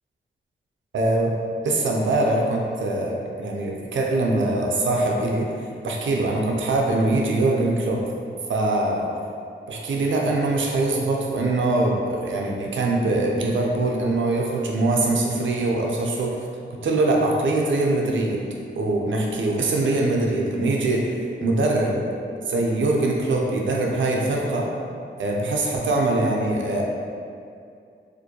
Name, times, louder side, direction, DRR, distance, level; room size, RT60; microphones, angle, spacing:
voice 1, 0.9-1.3 1.6-5.5 5.8-8.0 8.5-9.1 9.7-16.4 16.8-18.4 18.8-21.0 21.4-22.0 22.5-24.7 25.2-26.8, right 2 dB, 65° right, -1 dB, 0.5 m, -22 dB
2.5 x 2.2 x 2.7 m, 2.4 s
cardioid pair, 55°, 21 cm